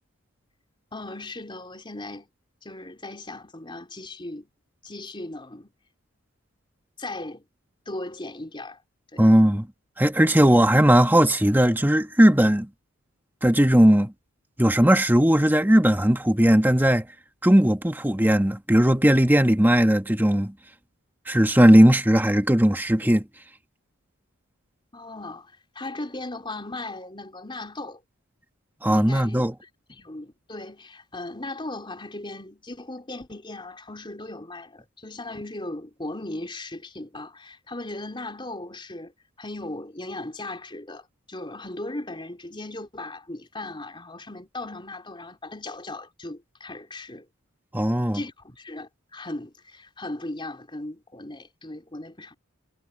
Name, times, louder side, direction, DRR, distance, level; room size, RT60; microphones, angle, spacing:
voice 1, 0.9-2.3 2.6-4.5 4.8-5.7 7.0-7.4 7.9-8.8 9.1-9.2 24.9-28.0 28.9-29.5 29.9-39.1 39.4-47.3 48.1-52.4, left 2 dB, 25° left, 3.9 m, -37 dB
voice 2, 9.2-9.7 10.0-12.7 13.4-14.1 14.6-17.1 17.4-20.5 21.3-23.2 28.8-29.5 47.7-48.2, equal, 10° right, 1.5 m, -18 dB
head